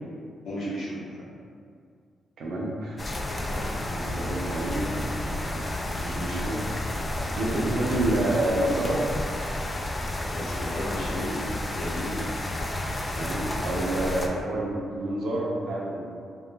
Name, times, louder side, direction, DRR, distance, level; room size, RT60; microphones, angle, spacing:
voice 1, 0.4-1.0 3.4-3.8 7.1-7.2 10.2-11.4 11.7-12.3, equal, 80° left, -10 dB, 0.9 m, -34 dB
voice 2, 2.4-6.6 7.3-9.1 13.1-16.1, right 1 dB, 75° right, -3 dB, 0.5 m, -29 dB
sound 1, 3.0-14.3, left 1 dB, 25° left, 0.3 m, -31 dB
2.9 x 2.3 x 2.2 m, 2.3 s
cardioid pair, 65°, 0 cm